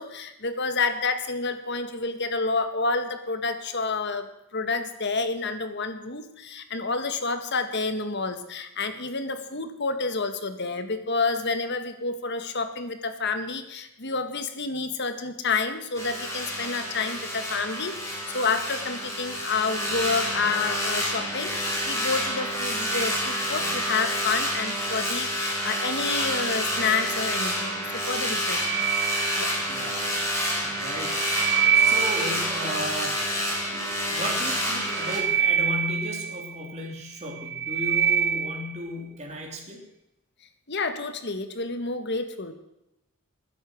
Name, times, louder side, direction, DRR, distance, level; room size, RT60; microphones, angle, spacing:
voice 1, 0.0-4.3 4.5-28.8 29.4-29.5 40.7-42.5, left 4 dB, 55° left, 9 dB, 1.8 m, -29 dB
sound 1, 15.9-35.2, equal, 15° left, 4.6 m, -29 dB
sound 2, 28.3-29.9 30.8-32.7 34.6-36.7 37.2-38.8, right 7 dB, 85° right, 2.5 m, -25 dB
voice 2, 29.7-30.1 30.6-31.3 31.7-33.2 33.7-39.8, equal, 30° right, -1 dB, 3.3 m, -35 dB
20.0 x 10.5 x 6.4 m, 0.89 s
head